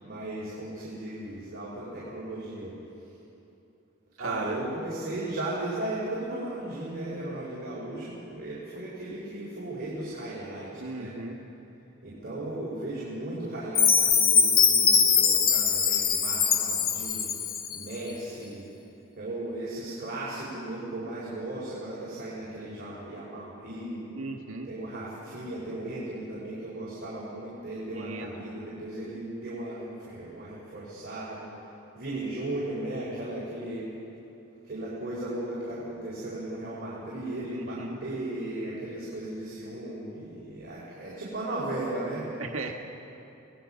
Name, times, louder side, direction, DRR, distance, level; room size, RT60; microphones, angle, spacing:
voice 1, 0.0-2.7 4.2-11.1 12.0-17.3 17.7-18.6 19.2-24.2 24.6-31.4 31.9-33.9 34.7-42.4, right 1 dB, 45° right, -7 dB, 4.6 m, -36 dB
voice 2, 4.2-4.6 10.8-11.4 24.1-24.7 27.9-28.5 37.4-38.0 42.4-42.7, right 3 dB, 85° right, 2 dB, 1.6 m, -36 dB
Chime, 13.7-17.8, left 6 dB, 45° left, 1.4 m, -22 dB
26.5 x 18.0 x 5.7 m, 2.9 s
head